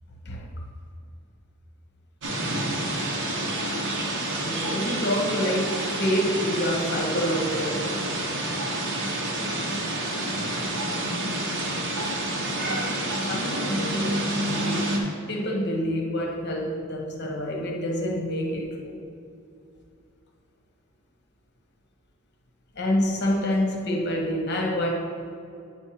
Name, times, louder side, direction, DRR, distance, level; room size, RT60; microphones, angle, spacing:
sound 1, 2.2-15.0, right 1 dB, 60° right, 1.0 m, -28 dB
voice 1, 4.4-8.0 13.2-15.0 15.3-19.0 22.7-24.9, equal, 55° left, 1.0 m, -27 dB
9.0 x 4.4 x 4.7 m
head